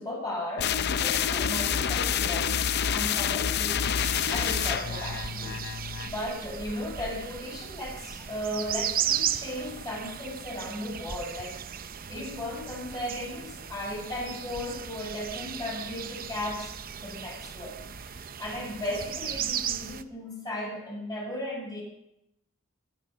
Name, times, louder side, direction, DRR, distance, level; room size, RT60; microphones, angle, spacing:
voice 1, 0.0-2.6 2.9-21.8, left 1 dB, 20° left, -2 dB, 6.4 m, -36 dB
sound 1, 0.6-6.2, left 8 dB, 55° left, 0.5 m, -28 dB
sound 2, 4.0-20.0, right 9 dB, 45° right, 0.7 m, -36 dB
21.0 x 12.0 x 5.3 m, 0.81 s
head